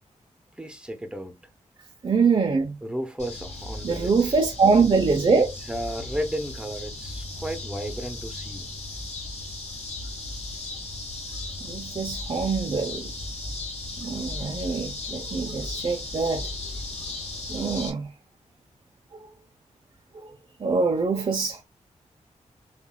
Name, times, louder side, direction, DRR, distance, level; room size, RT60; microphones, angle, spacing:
voice 1, 0.6-1.4 2.8-4.3 5.3-8.7, equal, 10° right, 0.9 m, -34 dB
voice 2, 2.0-2.8 3.8-5.5 11.7-13.1 14.0-16.5 17.5-18.1 20.6-21.6, right 4 dB, 45° right, 0.8 m, -23 dB
sound 1, 3.2-17.9, left 2 dB, 65° left, 2.0 m, -36 dB
7.3 x 2.6 x 2.3 m
wide cardioid pair, 120°, 12 cm